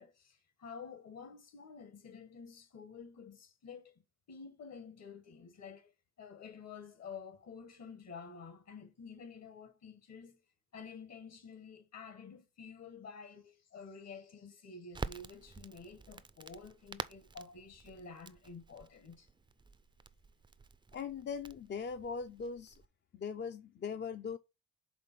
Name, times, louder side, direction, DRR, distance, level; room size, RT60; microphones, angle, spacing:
voice 1, 0.0-4.0 4.3-5.9 6.2-10.4 10.7-19.3, left 5 dB, 60° left, 1.6 m, -50 dB
Crackle, 14.9-22.9, right 4 dB, 15° right, 0.4 m, -48 dB
voice 2, 20.9-22.7 23.1-24.4, left 6 dB, 35° left, 0.5 m, -40 dB
5.1 x 3.8 x 5.7 m
cardioid pair, 90°, 30 cm